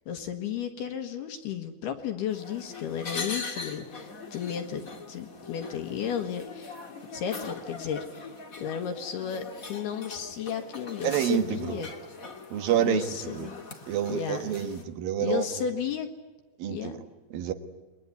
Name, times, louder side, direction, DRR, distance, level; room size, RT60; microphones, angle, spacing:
voice 1, 0.1-6.7 7.1-11.9 12.8-13.5 14.1-14.5 15.2-16.1 16.7-17.0, left 8 dB, 65° left, 5 dB, 3.1 m, -33 dB
sound 1, 2.3-14.8, left 4 dB, 90° left, 0.7 m, -41 dB
voice 2, 11.0-11.8 12.5-13.5 13.9-15.6 16.6-17.0 17.3-17.5, right 10 dB, 65° right, 9 dB, 2.6 m, -28 dB
28.5 x 21.5 x 9.6 m, 1.2 s
omnidirectional pair, 5.5 m